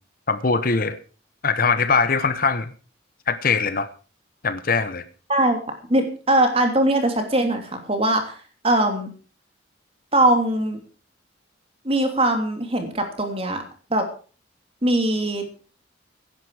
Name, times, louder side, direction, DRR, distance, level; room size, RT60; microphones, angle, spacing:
voice 1, 0.3-1.0 1.4-2.7 3.3-3.9 4.4-5.0, left 4 dB, 45° left, 12 dB, 1.0 m, -21 dB
voice 2, 5.9-8.4 8.6-9.1 10.1-10.8 11.8-13.6 13.9-14.1 14.8-15.4, right 1 dB, 30° right, 5 dB, 3.0 m, -21 dB
16.0 x 11.0 x 5.0 m, 0.39 s
head